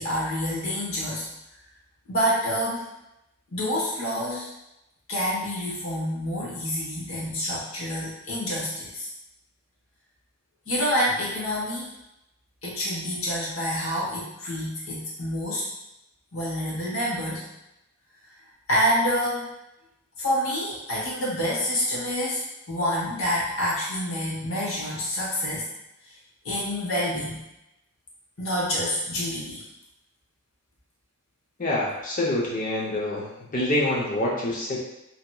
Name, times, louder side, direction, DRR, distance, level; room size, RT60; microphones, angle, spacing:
voice 1, 0.0-1.3 2.1-2.8 3.5-4.5 5.1-9.1 10.7-11.9 12.6-15.6 16.3-17.5 18.7-19.5 20.2-25.6 26.4-27.4 28.4-29.6, equal, 65° left, -6 dB, 1.0 m, -27 dB
voice 2, 31.6-34.8, left 1 dB, 35° left, -4 dB, 0.7 m, -26 dB
2.8 x 2.8 x 2.3 m, 0.89 s
head